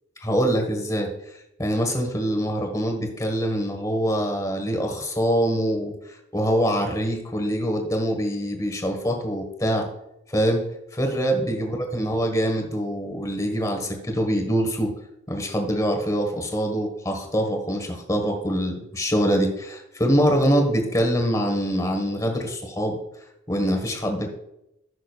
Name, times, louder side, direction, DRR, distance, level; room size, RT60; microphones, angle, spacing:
voice 1, 0.2-1.1 1.6-5.9 6.3-9.9 10.3-10.7 10.9-14.9 15.3-23.0 23.5-24.3, equal, 15° left, 3 dB, 1.4 m, -24 dB
15.0 x 6.3 x 2.4 m, 0.84 s
head